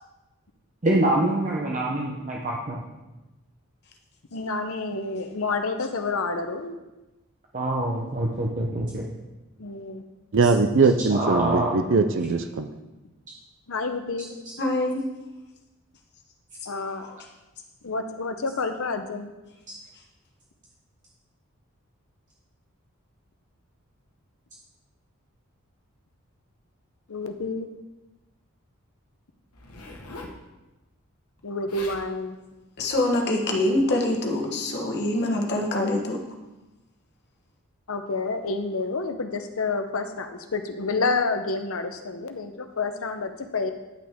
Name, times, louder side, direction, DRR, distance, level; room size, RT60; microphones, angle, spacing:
voice 1, 0.8-2.8 7.5-9.1 11.1-11.7, right 1 dB, 35° right, -2 dB, 0.8 m, -25 dB
voice 2, 4.3-6.7 9.6-10.0 13.7-14.3 16.7-17.0 17.8-19.3 27.1-27.7 31.4-32.4 37.9-43.7, left 3 dB, 70° left, 7 dB, 0.8 m, -29 dB
voice 3, 10.3-12.7, right 4 dB, 55° right, 8 dB, 0.5 m, -21 dB
voice 4, 14.6-15.0 32.8-36.2, left 1 dB, 50° left, 1 dB, 1.2 m, -24 dB
Zipper (clothing), 29.5-30.4 31.4-31.5 31.7-32.1 32.8-33.0, left 2 dB, 90° left, 1.2 m, -42 dB
10.0 x 6.0 x 3.6 m, 1.1 s
head